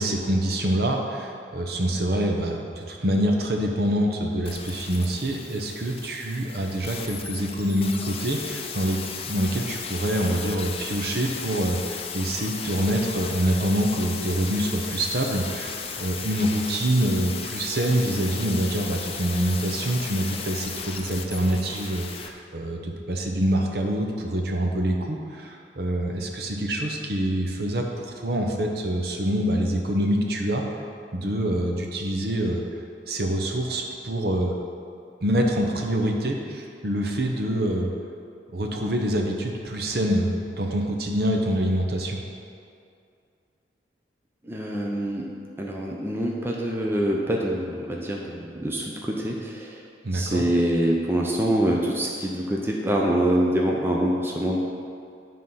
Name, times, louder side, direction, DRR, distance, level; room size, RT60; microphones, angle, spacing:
voice 1, 0.0-9.0 9.2-30.6 31.1-32.6 33.1-34.5 35.2-37.9 38.5-42.2 50.0-50.4, right 1 dB, 60° right, 1 dB, 0.9 m, -25 dB
sound 1, 4.5-22.3 22.6-22.7, left 6 dB, 35° left, 0.5 m, -35 dB
voice 2, 44.4-45.3 45.6-49.8 50.1-54.6, right 1 dB, 15° right, -2 dB, 0.6 m, -25 dB
10.0 x 3.8 x 5.6 m, 2.4 s
head